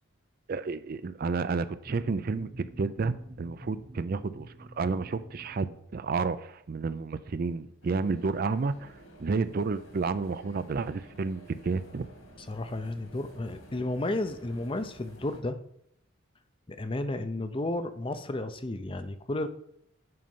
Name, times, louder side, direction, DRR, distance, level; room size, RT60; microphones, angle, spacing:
voice 1, 0.5-2.5 2.8-8.9 9.2-12.1, right 4 dB, 45° right, 13 dB, 0.4 m, -31 dB
sound 1, 1.8-6.1, right 1 dB, 20° right, 1.0 m, -48 dB
sound 2, 7.8-15.4, right 1 dB, 65° left, 2.6 m, -52 dB
voice 2, 12.5-15.6 16.7-19.5, left 2 dB, 25° left, 10 dB, 0.6 m, -32 dB
7.7 x 5.5 x 5.4 m, 0.72 s
head